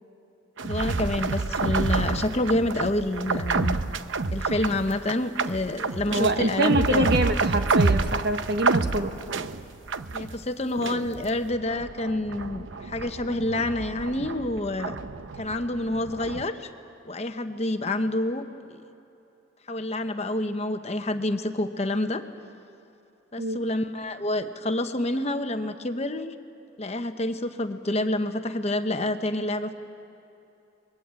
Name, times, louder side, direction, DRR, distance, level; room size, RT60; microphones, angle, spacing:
voice 1, 0.6-3.8 4.3-7.1 10.1-15.0 15.4-16.7 17.0-18.8 19.7-22.2 23.3-26.3 26.8-29.7, left 1 dB, 35° left, 8 dB, 1.0 m, -28 dB
sound 1, 0.6-10.5 10.8-16.5, right 3 dB, 80° right, 0.8 m, -28 dB
voice 2, 6.1-9.2 23.4-23.6, right 1 dB, 60° right, 7 dB, 1.4 m, -25 dB
28.0 x 22.0 x 8.3 m, 2.8 s
head